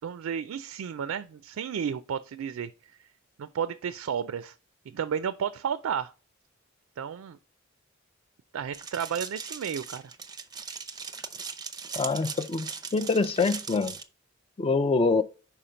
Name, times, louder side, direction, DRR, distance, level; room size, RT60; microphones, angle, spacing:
voice 1, 0.0-2.9 3.4-4.6 4.9-6.1 7.0-7.4 8.5-10.0, right 7 dB, 90° right, 0.4 m, -32 dB
sound 1, 8.7-14.0, right 5 dB, 20° right, 0.6 m, -39 dB
voice 2, 12.0-13.9 14.6-15.2, left 4 dB, 25° left, 0.4 m, -25 dB
5.7 x 4.6 x 5.0 m
head